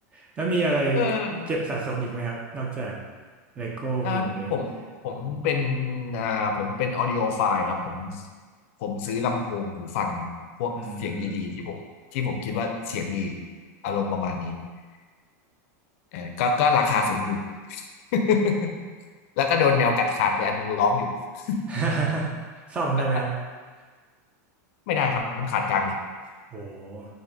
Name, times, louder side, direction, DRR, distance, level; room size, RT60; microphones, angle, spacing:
voice 1, 0.1-3.0 3.6-4.6 10.8-11.4 21.7-22.3 22.7-23.3 26.5-27.1, right 3 dB, 15° right, -2 dB, 0.4 m, -28 dB
voice 2, 0.9-1.3 4.0-4.7 5.0-8.2 8.8-10.3 10.6-10.7 11.0-11.8 12.1-13.3 13.8-14.6 16.1-17.4 17.7-17.8 18.1-18.7 19.4-21.1 21.5-21.6 24.9-25.9, left 5 dB, 50° left, 3 dB, 0.4 m, -25 dB
3.7 x 2.6 x 3.3 m, 1.5 s
supercardioid pair, 170°, 9 cm